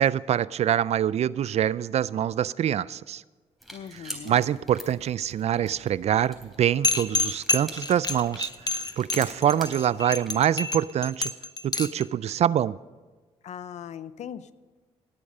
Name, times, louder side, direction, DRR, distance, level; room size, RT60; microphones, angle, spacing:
voice 1, 0.0-3.2 4.1-11.3 11.6-12.8, right 10 dB, 65° right, 20 dB, 0.4 m, -25 dB
sound 1, 3.6-10.7, equal, ahead, 3.7 m, -45 dB
voice 2, 3.7-4.5 13.4-14.5, left 9 dB, 75° left, 15 dB, 0.6 m, -39 dB
sound 2, 6.8-12.0, left 3 dB, 35° left, 0.9 m, -28 dB
18.5 x 8.5 x 5.4 m, 1.3 s
cardioid pair, 75°, 12 cm